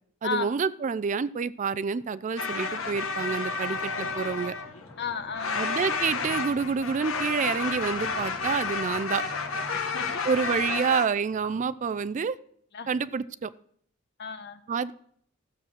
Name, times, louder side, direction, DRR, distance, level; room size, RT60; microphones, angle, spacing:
voice 1, 0.2-4.5 5.6-9.2 10.3-12.4 12.9-13.5 14.7-14.9, right 5 dB, 35° right, 17 dB, 0.4 m, -28 dB
sound 1, 2.4-5.0 5.3-11.1, left 4 dB, 85° left, 1.2 m, -31 dB
sound 2, 2.8-10.7, equal, 15° left, 2.2 m, -48 dB
voice 2, 5.0-5.6 9.7-10.3 10.7-10.8 12.7-12.9 14.2-14.6, left 5 dB, 55° left, 10 dB, 1.1 m, -34 dB
13.5 x 7.5 x 6.4 m, 0.64 s
head